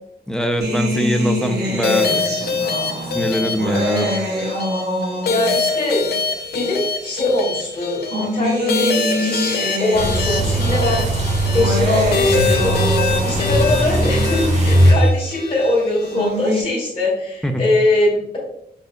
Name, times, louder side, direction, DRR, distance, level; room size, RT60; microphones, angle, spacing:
voice 1, 0.3-4.1 17.4-17.6, equal, 5° left, 5 dB, 0.4 m, -23 dB
sound 1, 0.6-5.7 6.6-6.7 7.8-13.7 15.8-16.6, equal, 80° right, 1.0 m, -25 dB
sound 2, 1.8-16.3, left 5 dB, 75° left, 0.5 m, -25 dB
voice 2, 5.3-6.1 6.5-11.1 11.5-18.4, left 2 dB, 35° left, -6 dB, 1.7 m, -22 dB
sound 3, 9.9-14.9, right 1 dB, 45° right, 1.0 m, -19 dB
4.9 x 4.3 x 2.2 m, 0.74 s
wide cardioid pair, 155°, 17 cm